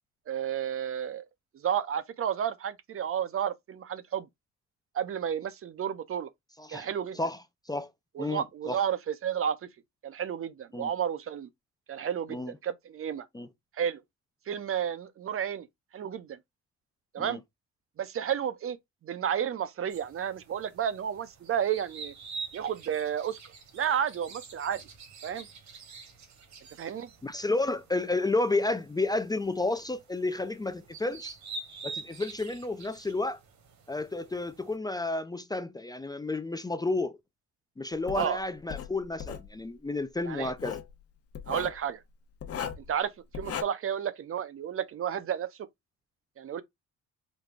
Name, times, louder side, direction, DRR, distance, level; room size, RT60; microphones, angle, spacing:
voice 1, 0.3-1.2 1.6-4.3 4.9-6.3 6.7-7.2 8.2-9.6 10.0-11.5 11.9-13.3 13.8-14.0 14.5-15.7 15.9-16.4 17.1-17.4 18.0-18.8 19.0-22.1 22.5-23.4 23.7-24.8 25.2-25.5 26.8-27.1 38.1-38.4 40.2-40.5 41.5-42.0 42.9-45.5 46.4-46.6, right 9 dB, 45° right, 0.6 m, -31 dB
voice 2, 6.6-6.9 7.1-7.9 8.2-8.8 10.7-10.9 12.3-12.5 13.3-13.5 17.2-17.4 27.2-31.3 31.8-33.4 33.9-37.2 37.8-40.8, left 2 dB, 15° left, 0.4 m, -31 dB
sound 1, 19.9-34.8, right 4 dB, 65° right, 1.3 m, -46 dB
Writing, 38.1-38.3 38.7-39.5 40.4-40.9 41.3-41.8 42.4-42.9 43.3-43.6, left 8 dB, 50° left, 0.9 m, -36 dB
4.0 x 2.2 x 3.5 m
cardioid pair, 90°, 30 cm